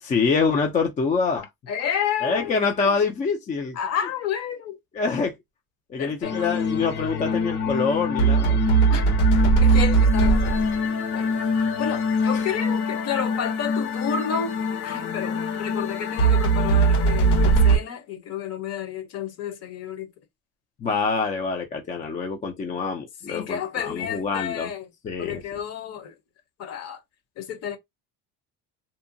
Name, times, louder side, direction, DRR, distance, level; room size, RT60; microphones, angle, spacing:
voice 1, 0.0-1.5 2.2-3.8 4.9-5.4 5.9-8.6 12.3-12.4 20.8-24.7 25.0-25.4, left 5 dB, 25° left, 0.4 m, -25 dB
voice 2, 1.7-3.0 3.7-4.8 6.0-6.4 8.9-9.0 9.6-10.6 11.1-20.1 23.3-24.8 25.2-26.1 26.6-27.0 27.4-27.8, left 8 dB, 45° left, 0.8 m, -31 dB
Content warning, 6.2-17.8, right 2 dB, 85° left, 1.4 m, -21 dB
2.7 x 2.1 x 2.5 m
cardioid pair, 140°, 34 cm